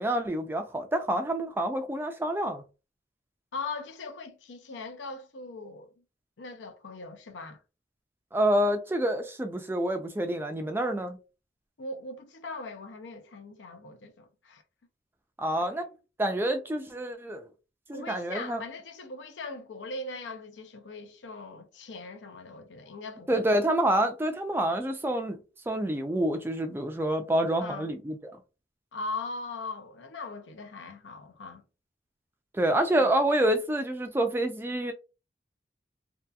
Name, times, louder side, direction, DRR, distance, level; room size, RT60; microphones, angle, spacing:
voice 1, 0.0-2.6 8.3-11.2 15.4-15.9 16.2-17.5 17.9-18.6 23.3-25.4 25.7-28.3 32.5-34.9, right 1 dB, 10° right, 0.3 m, -27 dB
voice 2, 3.5-5.9 6.4-7.6 11.8-14.6 15.6-15.9 17.9-23.6 27.6-27.9 28.9-31.6 33.0-33.1, left 3 dB, 90° left, 0.5 m, -40 dB
2.7 x 2.4 x 2.2 m
head